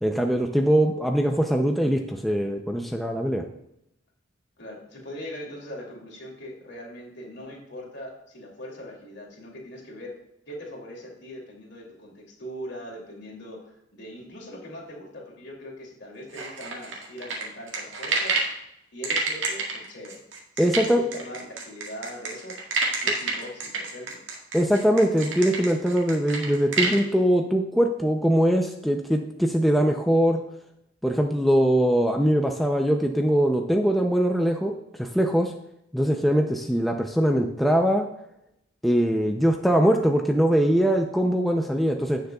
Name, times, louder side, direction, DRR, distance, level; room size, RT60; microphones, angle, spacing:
voice 1, 0.0-3.4 20.6-21.0 24.5-30.4 31.0-35.5 35.9-38.1 38.8-42.2, equal, ahead, 2 dB, 0.5 m, -22 dB
voice 2, 4.6-10.2 10.5-18.4 18.9-20.2 20.5-22.6 23.0-24.2, equal, 60° left, -2 dB, 2.8 m, -41 dB
sound 1, 16.3-18.5 19.0-27.0, right 4 dB, 70° right, 2.1 m, -28 dB
16.5 x 6.5 x 2.3 m, 0.79 s
head